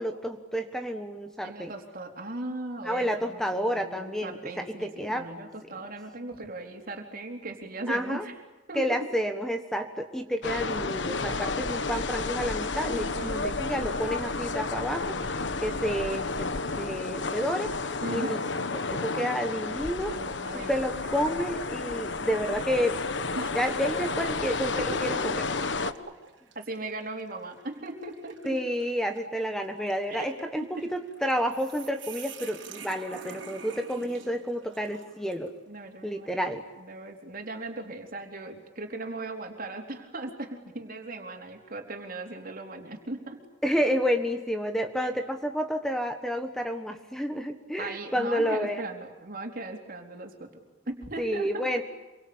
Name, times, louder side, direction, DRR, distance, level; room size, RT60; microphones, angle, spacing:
voice 1, 0.0-1.7 2.8-5.2 7.9-8.2 8.7-16.5 16.8-17.7 18.1-18.4 18.7-20.1 20.5-23.0 23.5-25.4 28.4-35.5 36.0-36.6 43.6-48.8 51.2-51.8, equal, 5° left, 6 dB, 1.4 m, -30 dB
voice 2, 1.4-8.3 8.7-9.1 12.9-13.7 18.0-18.4 19.9-21.1 23.4-23.6 24.7-25.4 25.8-26.0 26.5-28.6 30.1-30.9 35.7-36.5 36.8-43.4 45.0-45.1 47.8-50.5 50.9-51.8, right 2 dB, 45° right, 3 dB, 4.1 m, -38 dB
sound 1, 10.4-25.9, left 3 dB, 70° left, 1.3 m, -31 dB
sound 2, 20.6-21.1 21.6-21.8 22.7-23.0 23.6-35.6, right 6 dB, 70° right, 3.6 m, -49 dB
27.5 x 24.5 x 8.9 m, 1.1 s
head